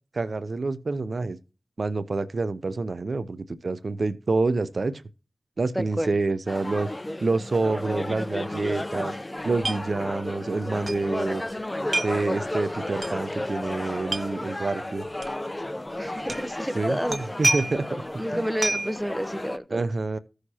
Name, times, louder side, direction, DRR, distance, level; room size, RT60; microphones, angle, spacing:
voice 1, 0.1-1.4 1.8-5.0 5.6-6.9 7.2-9.1 9.4-11.4 12.0-15.0 16.8-17.9 18.3-18.4 19.7-20.2, right 3 dB, 75° right, 0.6 m, -27 dB
voice 2, 5.7-6.1 16.0-17.2 18.2-19.8, equal, 5° right, 0.9 m, -30 dB
sound 1, 6.5-19.6, left 1 dB, 25° left, 0.6 m, -33 dB
sound 2, 9.6-9.8 10.1-10.2 10.8-11.0 11.9-12.2 13.0-13.1 14.0-14.3 15.2-15.3 16.3-16.5 17.1-17.9 18.6-19.0, right 2 dB, 55° right, 1.0 m, -27 dB
15.0 x 6.4 x 2.8 m
cardioid pair, 45°, 0 cm